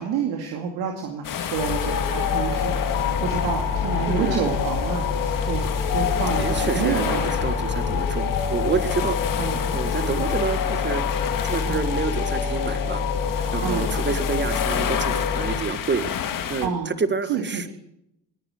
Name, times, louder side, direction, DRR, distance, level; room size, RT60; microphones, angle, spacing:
voice 1, 0.0-5.6 5.9-7.4 9.4-9.7 10.0-10.2 11.6-11.9 13.6-13.9 16.6-16.9 17.3-17.8, right 6 dB, 80° right, 1 dB, 2.5 m, -29 dB
sound 1, 1.2-16.7, left 8 dB, 60° left, 2.0 m, -31 dB
sound 2, 1.5-15.6, left 6 dB, 85° left, 3.2 m, -26 dB
voice 2, 4.1-4.5 6.4-9.2 9.7-11.0 11.4-13.0 13.5-16.0 16.5-17.7, right 5 dB, 30° right, 12 dB, 1.7 m, -28 dB
21.0 x 10.0 x 6.3 m, 0.78 s
supercardioid pair, 70°, 37 cm